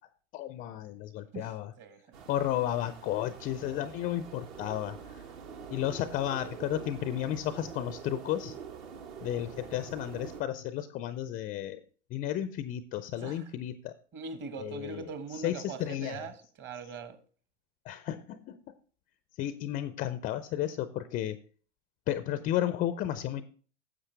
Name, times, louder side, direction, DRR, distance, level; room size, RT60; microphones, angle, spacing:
voice 1, 0.3-1.7 2.3-5.2 5.7-8.6 9.2-11.8 12.1-13.9 14.6-15.0 15.3-16.3 17.8-18.6 19.4-21.4 22.1-23.4, left 12 dB, 25° left, 0.4 m, -33 dB
sound 1, 2.1-10.4, right 6 dB, 60° right, 1.7 m, -45 dB
voice 2, 14.1-17.2, right 5 dB, 30° right, 1.3 m, -41 dB
9.9 x 7.7 x 3.3 m
hypercardioid pair, 100°, 36 cm